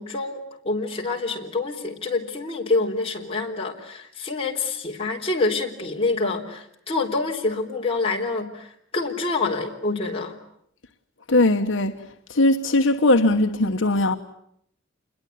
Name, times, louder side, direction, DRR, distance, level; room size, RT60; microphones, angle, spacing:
voice 1, 0.0-10.3, left 3 dB, 25° left, 3.7 m, -27 dB
voice 2, 11.3-11.9 12.3-14.2, left 2 dB, 65° left, 1.2 m, -19 dB
28.0 x 21.5 x 9.3 m
head